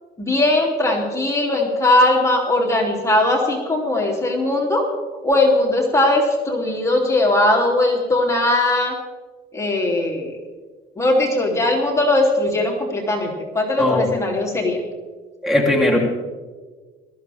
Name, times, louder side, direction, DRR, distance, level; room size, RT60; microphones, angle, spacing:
voice 1, 0.2-4.9 5.2-8.9 9.5-10.4 11.0-14.8, left 2 dB, 15° left, -1 dB, 3.2 m, -19 dB
voice 2, 13.8-14.1 15.4-16.0, left 1 dB, ahead, 0 dB, 3.3 m, -18 dB
21.5 x 14.5 x 3.6 m, 1.3 s
cardioid pair, 110°, 17 cm